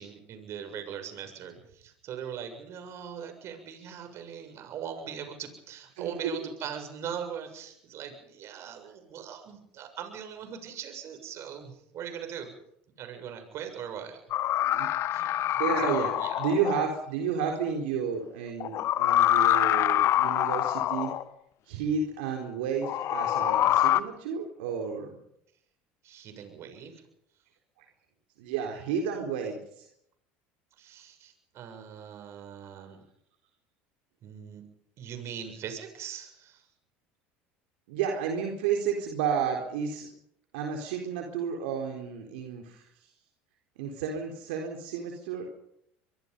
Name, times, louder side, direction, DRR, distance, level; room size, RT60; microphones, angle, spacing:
voice 1, 0.0-12.5 13.0-14.2 15.1-16.4 26.0-27.0 30.8-33.0 34.2-34.7 35.0-36.6, right 8 dB, 55° right, 6 dB, 7.1 m, -41 dB
voice 2, 6.0-6.5 14.6-14.9 15.6-21.1 21.7-25.2 28.4-29.9 32.8-32.9 37.9-40.1 40.5-43.1 43.8-45.5, right 6 dB, 80° right, 2 dB, 4.1 m, -31 dB
sound 1, 14.3-16.9 18.6-21.2 22.8-24.0, left 12 dB, 55° left, 1.1 m, -25 dB
24.5 x 24.0 x 5.5 m, 0.74 s
supercardioid pair, 90°, 6 cm